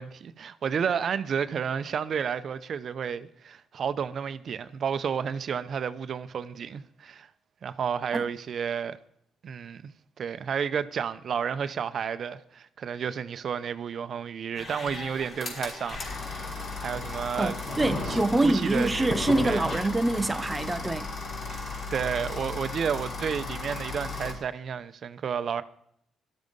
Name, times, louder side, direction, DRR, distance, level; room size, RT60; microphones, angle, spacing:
voice 1, 0.0-7.3 7.6-9.0 9.4-9.9 10.2-16.5 16.8-17.6 18.1-19.1 19.4-19.7 21.5-25.6, right 7 dB, 55° right, 0.8 m, -31 dB
sound 1, 14.5-24.3, left 3 dB, 55° left, 5.7 m, -35 dB
voice 2, 17.4-21.1, right 2 dB, 15° right, 0.6 m, -25 dB
17.5 x 13.0 x 5.4 m
cardioid pair, 105°, 0 cm